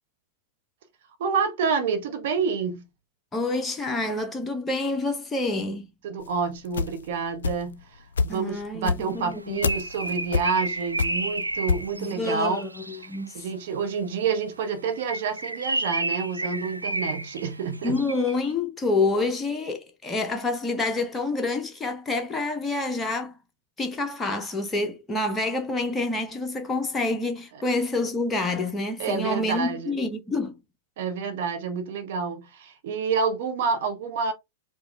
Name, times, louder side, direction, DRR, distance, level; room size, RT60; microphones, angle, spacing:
voice 1, 1.2-2.8 6.0-12.7 13.3-18.0 27.5-27.6 29.0-30.0 31.0-34.3, right 5 dB, 55° right, 0.9 m, -28 dB
voice 2, 3.3-5.9 8.3-9.6 12.0-13.5 17.8-23.3 23.8-30.5, left 2 dB, 15° left, 0.7 m, -27 dB
sound 1, 6.2-7.8 8.1-11.9, left 5 dB, 70° left, 0.4 m, -27 dB
Bird, 9.2-13.3 14.9-18.4, right 2 dB, 90° right, 0.4 m, -32 dB
4.9 x 2.3 x 3.1 m
figure-of-eight pair, 100°, 0 cm